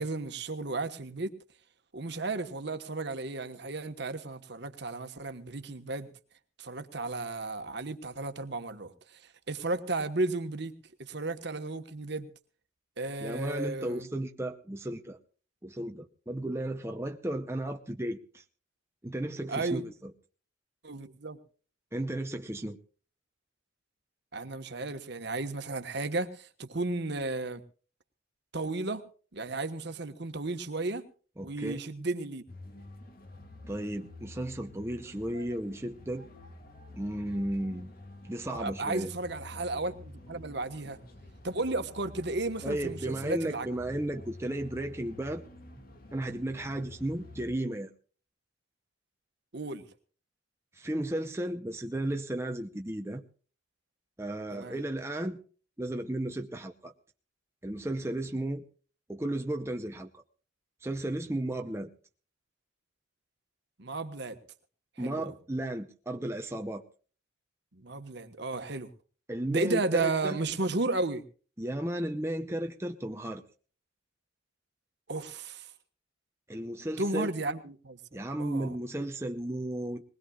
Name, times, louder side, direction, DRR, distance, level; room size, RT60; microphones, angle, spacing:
voice 1, 0.0-1.3 1.9-6.1 6.6-10.7 11.0-12.3 13.0-14.1 19.5-19.8 20.8-21.4 24.3-27.6 28.5-29.0 29.3-31.1 31.4-32.4 38.5-41.0 41.4-43.7 49.5-49.9 54.5-54.8 63.8-64.4 65.0-65.3 67.7-68.9 69.5-71.2 75.1-75.7 77.0-78.8, right 2 dB, 55° right, 9 dB, 1.3 m, -34 dB
voice 2, 13.2-15.2 15.6-18.4 19.0-20.1 21.9-22.8 31.4-31.8 33.7-36.3 37.0-37.9 38.2-39.1 42.6-45.4 46.1-47.9 50.7-53.2 54.2-55.4 55.8-56.9 57.6-58.7 59.1-60.1 60.8-61.9 65.0-66.8 69.3-70.4 71.6-73.4 76.5-77.3 78.1-80.0, right 1 dB, 15° right, 4 dB, 0.6 m, -34 dB
sound 1, 32.5-47.5, left 2 dB, 45° left, 2.0 m, -49 dB
21.0 x 20.0 x 2.4 m, 0.40 s
head